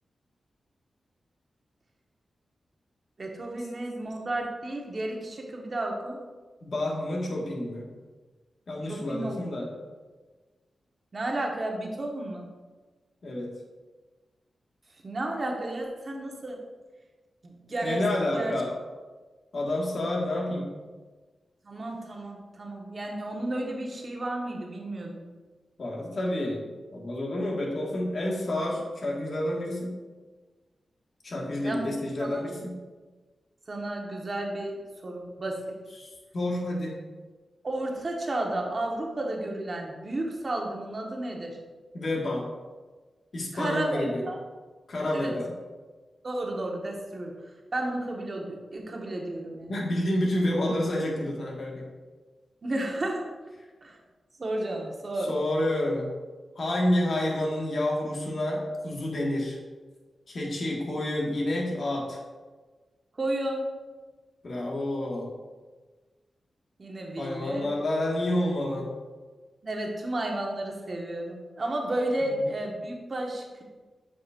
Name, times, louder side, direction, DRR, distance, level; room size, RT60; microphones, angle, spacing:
voice 1, 3.2-6.2 8.9-9.3 11.1-12.4 15.0-16.6 17.4-18.1 18.3-18.5 21.6-25.3 31.6-31.9 32.2-32.4 33.7-35.8 37.6-41.6 43.5-44.4 45.1-45.3 46.2-47.3 47.7-49.7 52.6-53.2 53.8-54.0 54.4-55.3 63.2-63.7 66.8-67.7 69.6-73.6, right 1 dB, 50° right, 0 dB, 1.3 m, -32 dB
voice 2, 6.6-7.8 8.7-9.7 13.2-13.5 17.8-18.8 19.5-20.7 25.8-26.6 26.9-30.0 31.2-32.8 36.0-37.0 41.9-42.4 43.3-44.2 44.9-45.5 49.7-51.8 55.3-56.1 56.5-59.6 60.3-62.2 64.4-65.3 67.2-68.9 72.2-72.4, left 1 dB, 65° left, -2 dB, 1.7 m, -29 dB
8.0 x 5.3 x 2.5 m, 1.3 s
cardioid pair, 55°, 0 cm